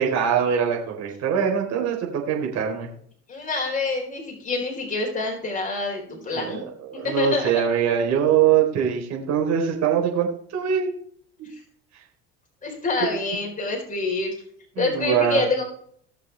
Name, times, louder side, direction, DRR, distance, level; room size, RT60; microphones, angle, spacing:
voice 1, 0.0-2.9 6.1-10.9 11.4-11.5 11.9-12.0 14.8-15.4, right 8 dB, 50° right, 0 dB, 3.9 m, -23 dB
voice 2, 3.3-6.6 7.0-7.6 11.4-11.5 12.6-14.4 14.8-15.6, left 3 dB, 25° left, 0 dB, 4.2 m, -27 dB
19.0 x 6.8 x 3.4 m, 0.62 s
hypercardioid pair, 75°, 33 cm